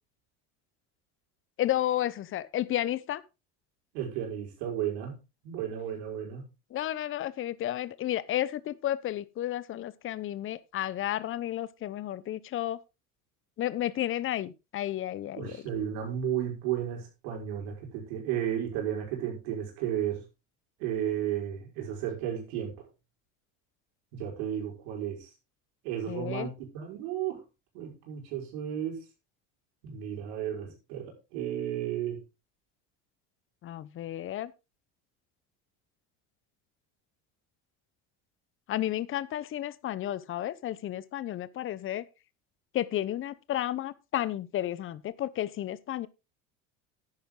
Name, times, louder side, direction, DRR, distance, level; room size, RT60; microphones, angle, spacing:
voice 1, 1.6-3.2 6.7-12.8 13.6-15.6 26.1-26.5 33.6-34.5 38.7-42.0 42.7-46.1, left 13 dB, 40° left, 0.9 m, -32 dB
voice 2, 3.9-5.2 5.4-6.4 15.3-20.2 20.8-22.7 24.1-25.3 25.8-27.4 27.7-29.0 29.8-32.2, right 10 dB, 85° right, 4.9 m, -33 dB
10.5 x 9.5 x 3.8 m
cardioid pair, 120°, 31 cm